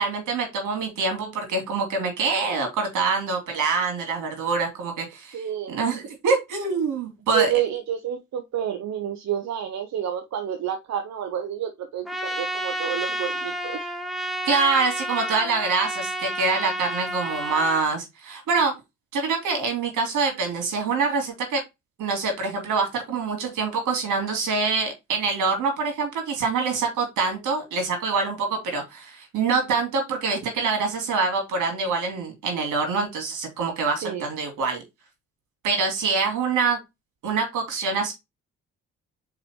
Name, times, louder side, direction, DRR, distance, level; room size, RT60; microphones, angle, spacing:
voice 1, 0.0-7.5 14.4-18.7 19.1-21.6 22.0-34.8 35.6-36.8 37.2-38.1, right 4 dB, 80° right, 3.1 m, -25 dB
voice 2, 5.3-5.8 7.3-13.8 34.0-34.3, right 10 dB, 65° right, 1.0 m, -29 dB
Trumpet, 12.0-17.8, equal, ahead, 1.2 m, -30 dB
4.9 x 4.7 x 4.3 m
cardioid pair, 90°, 30 cm